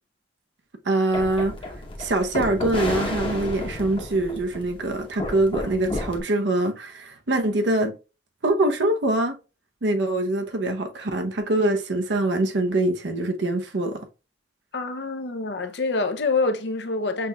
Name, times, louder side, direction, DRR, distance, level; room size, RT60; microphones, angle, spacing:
voice 1, 0.8-1.6 2.0-8.0 8.4-9.4 9.8-14.1, right 2 dB, 75° right, 0.8 m, -24 dB
sound 1, 1.1-6.2, left 1 dB, 30° left, 0.9 m, -31 dB
voice 2, 14.7-17.3, left 3 dB, 65° left, 0.6 m, -26 dB
6.1 x 3.0 x 2.3 m
head